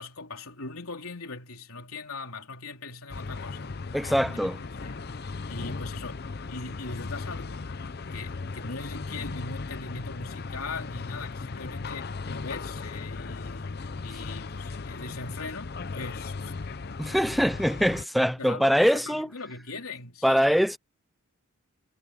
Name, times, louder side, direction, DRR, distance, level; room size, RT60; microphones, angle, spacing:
voice 1, 0.0-3.8 4.2-5.0 5.5-7.7 8.1-16.5 18.0-20.6, left 3 dB, 80° left, 3.4 m, -40 dB
sound 1, 3.1-18.0, left 4 dB, 45° left, 0.6 m, -37 dB
voice 2, 3.9-4.6 14.1-14.2 17.0-19.3 20.2-20.8, equal, ahead, 0.4 m, -23 dB
head